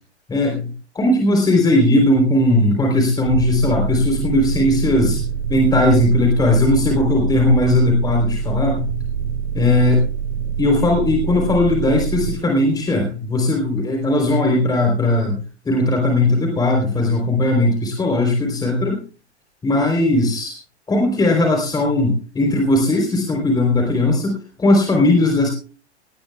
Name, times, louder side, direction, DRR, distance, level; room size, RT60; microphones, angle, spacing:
voice 1, 0.3-5.2 5.5-8.9 9.5-10.0 10.6-15.4 15.6-19.0 19.6-20.5 20.9-25.5, left 1 dB, 10° left, 2 dB, 3.5 m, -18 dB
sound 1, 3.2-12.3, right 7 dB, 55° right, 2.8 m, -25 dB
18.5 x 18.0 x 2.3 m, 0.39 s
figure-of-eight pair, 110°, 34 cm